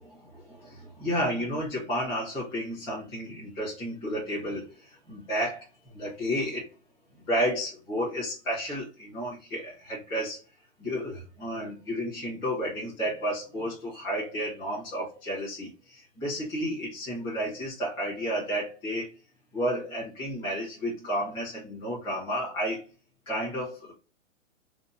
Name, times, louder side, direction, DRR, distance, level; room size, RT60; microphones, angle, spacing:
voice 1, 0.0-6.7 7.3-10.4 10.8-19.1 19.5-22.9 23.3-23.9, equal, 10° left, 0.9 m, -32 dB
2.8 x 2.0 x 2.5 m
hypercardioid pair, 165°, 40 cm